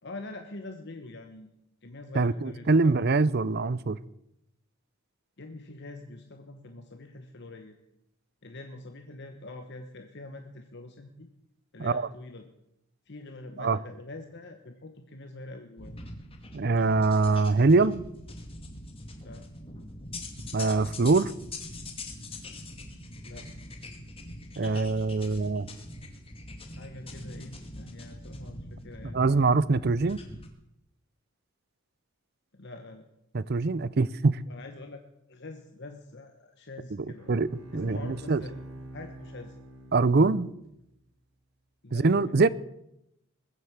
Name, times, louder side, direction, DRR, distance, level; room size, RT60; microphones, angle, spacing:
voice 1, 0.0-1.5 1.8-2.9 5.4-7.8 8.4-11.3 11.7-12.5 13.1-15.9 19.2-19.4 23.2-23.5 26.8-29.5 32.5-33.1 34.5-35.0 35.3-37.4 37.7-38.5 38.9-39.6 40.3-40.6 41.8-42.5, left 2 dB, 55° left, 1.1 m, -45 dB
voice 2, 2.1-4.0 11.8-12.0 13.6-13.8 16.5-18.0 20.5-21.3 24.6-25.7 29.1-30.2 33.3-34.4 37.3-38.4 39.9-40.5 41.9-42.5, right 3 dB, 50° right, 0.5 m, -23 dB
sound 1, 15.8-30.5, left 2 dB, 25° left, 2.1 m, -43 dB
Bowed string instrument, 37.1-40.7, right 1 dB, 80° right, 3.6 m, -45 dB
21.0 x 8.0 x 7.3 m
head